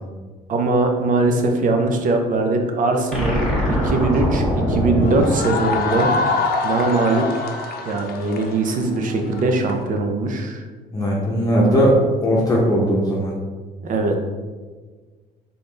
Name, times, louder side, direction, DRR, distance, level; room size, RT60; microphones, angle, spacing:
voice 1, 0.5-3.4 3.8-6.2 6.6-7.5 7.8-10.6 13.8-14.2, right 3 dB, 50° right, 4 dB, 0.7 m, -21 dB
sound 1, 3.1-6.4, equal, 5° left, 1.4 m, -22 dB
sound 2, 5.0-9.7, left 3 dB, 65° left, 0.7 m, -24 dB
voice 2, 10.9-13.3, equal, 20° left, -4 dB, 0.9 m, -18 dB
4.0 x 3.8 x 3.3 m, 1.4 s
cardioid pair, 110°, 17 cm